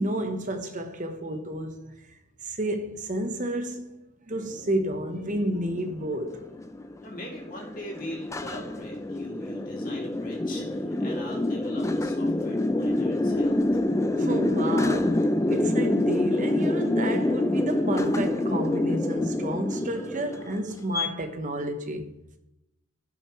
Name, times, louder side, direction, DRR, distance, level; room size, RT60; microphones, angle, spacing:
voice 1, 0.0-2.0 2.4-4.0 4.3-6.5 14.1-22.1, right 1 dB, 35° right, 1.0 m, -31 dB
sound 1, 4.7-21.1, left 1 dB, 15° left, 0.4 m, -27 dB
voice 2, 7.0-13.6, equal, 40° left, 2.7 m, -41 dB
16.5 x 6.8 x 3.1 m
head